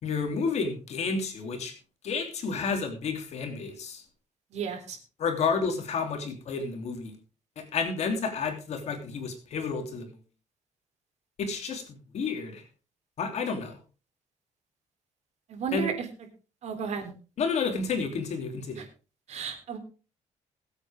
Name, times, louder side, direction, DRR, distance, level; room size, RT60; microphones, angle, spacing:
voice 1, 0.0-1.7 2.0-4.0 5.2-7.2 7.6-10.2 11.4-11.8 12.1-12.6 13.2-13.8 15.7-15.9 17.4-18.9, left 5 dB, 60° left, 4 dB, 3.1 m, -30 dB
voice 2, 4.5-5.0 15.5-15.9 16.6-17.1 18.8-18.9 19.3-19.8, right 6 dB, 60° right, 5 dB, 3.4 m, -33 dB
21.0 x 8.3 x 3.5 m, 0.33 s
cardioid pair, 125°, 13 cm